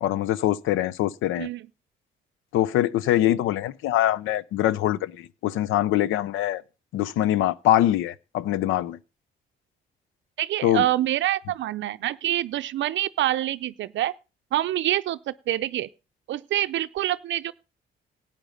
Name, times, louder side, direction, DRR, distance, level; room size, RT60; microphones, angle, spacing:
voice 1, 0.0-1.5 2.5-6.6 6.9-9.0 10.6-10.9, left 13 dB, 90° left, 0.6 m, -23 dB
voice 2, 10.4-14.1 14.5-15.9 16.3-17.5, right 13 dB, 70° right, 0.5 m, -26 dB
13.0 x 9.1 x 5.2 m
cardioid pair, 90°, 20 cm